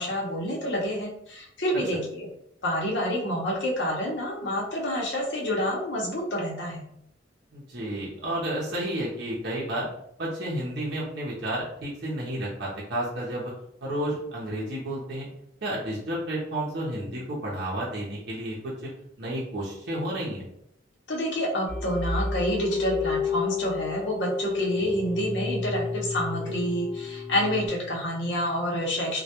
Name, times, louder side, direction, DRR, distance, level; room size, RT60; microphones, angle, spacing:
voice 1, 0.0-2.3 2.6-6.8 21.1-29.2, equal, 70° left, -2 dB, 0.7 m, -28 dB
voice 2, 7.5-9.9 10.2-13.5 13.8-15.3 15.6-18.7 19.2-20.5, right 1 dB, 60° right, -6 dB, 0.6 m, -31 dB
sound 1, 21.7-27.7, left 4 dB, 5° right, 0.5 m, -31 dB
2.2 x 2.2 x 2.8 m, 0.71 s
head